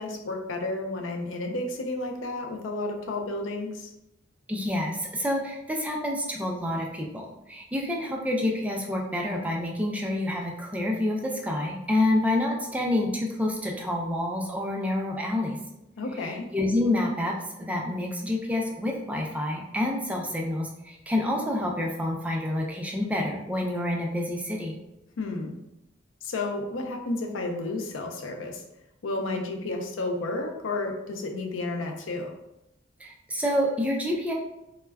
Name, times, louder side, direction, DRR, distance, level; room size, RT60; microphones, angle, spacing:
voice 1, 0.0-3.9 16.0-16.5 25.2-25.6 26.2-28.6 29.0-32.3, left 2 dB, 75° left, 3 dB, 0.5 m, -32 dB
voice 2, 4.5-15.6 16.2-17.3 17.6-24.7 33.0-34.3, left 1 dB, 5° right, -1 dB, 0.3 m, -28 dB
2.2 x 2.2 x 3.3 m, 0.89 s
head